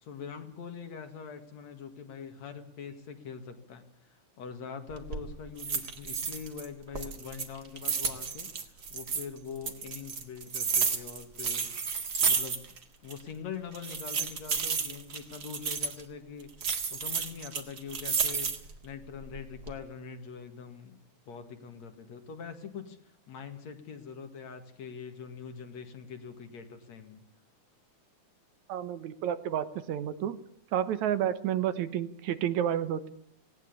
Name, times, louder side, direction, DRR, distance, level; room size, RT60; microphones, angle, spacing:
voice 1, 0.0-11.7 12.2-12.8 13.0-18.5 18.8-21.0 21.3-27.2, left 6 dB, 65° left, 7 dB, 3.2 m, -43 dB
sound 1, 4.9-5.2 5.6-6.7 6.9-9.3 9.7-12.8 13.1-13.2 13.7-16.0 16.6-18.7 19.2-19.7, right 5 dB, 40° right, 1.9 m, -31 dB
voice 2, 28.7-30.4 30.7-33.1, right 10 dB, 75° right, 12 dB, 2.5 m, -30 dB
18.5 x 18.0 x 8.5 m, 0.67 s
omnidirectional pair, 3.4 m